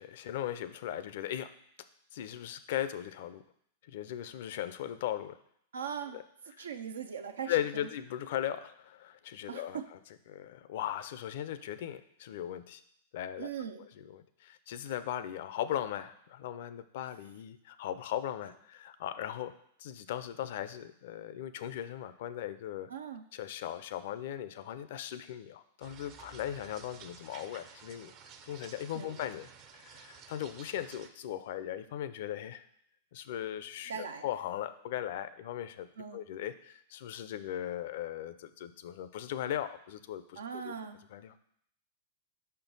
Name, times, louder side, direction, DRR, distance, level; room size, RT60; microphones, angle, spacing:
voice 1, 0.0-1.5 2.1-3.4 3.9-5.4 6.1-6.2 6.6-6.7 7.5-10.0 10.3-12.8 13.1-13.5 13.8-19.5 19.8-22.9 23.3-28.1 28.4-32.6 33.1-40.7 41.1-41.4, left 11 dB, 65° left, 13 dB, 0.5 m, -38 dB
voice 2, 5.7-6.2 6.6-7.9 9.5-9.8 13.4-13.9 22.9-23.2 28.9-29.2 33.9-34.3 36.0-36.2 40.4-41.0, right 7 dB, 85° right, 8 dB, 0.5 m, -40 dB
sound 1, 25.8-31.1, right 6 dB, 40° right, 0.6 m, -53 dB
5.4 x 4.5 x 5.3 m, 0.69 s
hypercardioid pair, 115°, 0 cm